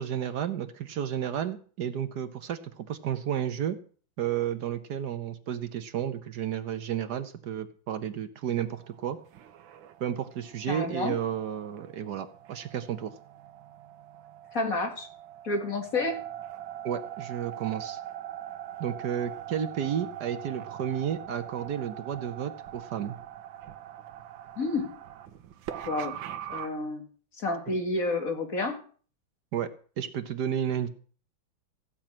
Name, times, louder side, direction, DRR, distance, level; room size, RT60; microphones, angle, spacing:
voice 1, 0.0-3.8 4.2-9.2 10.0-13.1 16.8-18.0 18.8-23.2 27.7-27.8 29.5-29.7 30.0-30.9, right 9 dB, 65° right, 10 dB, 1.3 m, -32 dB
sound 1, 8.7-26.7, right 11 dB, 80° right, 1.6 m, -42 dB
voice 2, 10.7-11.2 14.5-15.1 15.4-16.2 24.6-24.9 25.9-26.2 26.5-27.0 27.4-28.8, left 2 dB, 45° left, 4 dB, 2.5 m, -30 dB
15.5 x 5.9 x 8.7 m, 0.43 s
omnidirectional pair, 2.1 m